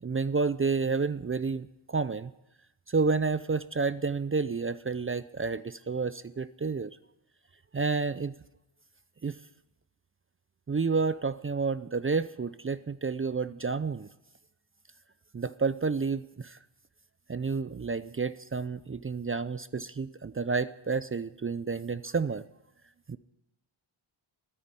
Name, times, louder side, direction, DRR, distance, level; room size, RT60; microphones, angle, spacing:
voice 1, 0.0-2.3 2.9-7.0 7.7-8.3 9.2-9.4 10.7-14.1 15.3-16.6 17.3-22.4 23.1-23.2, right 4 dB, 25° right, 15 dB, 0.5 m, -30 dB
13.0 x 10.0 x 9.7 m, 0.89 s
cardioid pair, 65°, 50 cm